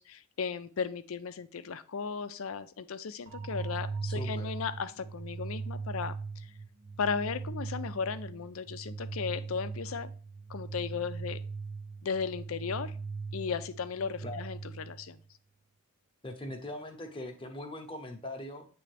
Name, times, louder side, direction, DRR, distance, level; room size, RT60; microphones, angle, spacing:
voice 1, 0.0-6.5 7.0-10.1 10.5-11.4 12.0-13.0 13.3-15.2, left 6 dB, 80° left, 12 dB, 0.5 m, -36 dB
sound 1, 3.3-15.2, right 4 dB, 30° right, 0.9 m, -39 dB
voice 2, 4.0-4.5 14.2-14.4 16.2-18.7, left 1 dB, 25° left, 4 dB, 0.8 m, -41 dB
8.4 x 3.4 x 3.3 m, 0.40 s
head